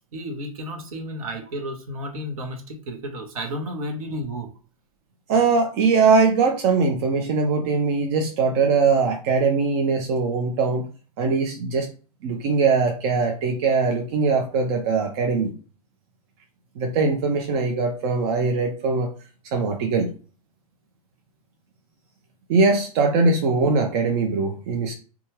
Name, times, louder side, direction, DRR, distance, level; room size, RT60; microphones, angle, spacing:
voice 1, 0.1-4.5, equal, 70° right, 3 dB, 1.0 m, -32 dB
voice 2, 5.3-10.9 11.2-11.9 12.2-15.5 16.8-19.1 19.5-20.1 22.5-24.9, right 4 dB, 50° right, 2 dB, 0.6 m, -21 dB
2.6 x 2.3 x 3.0 m, 0.37 s
hypercardioid pair, 105°, 19 cm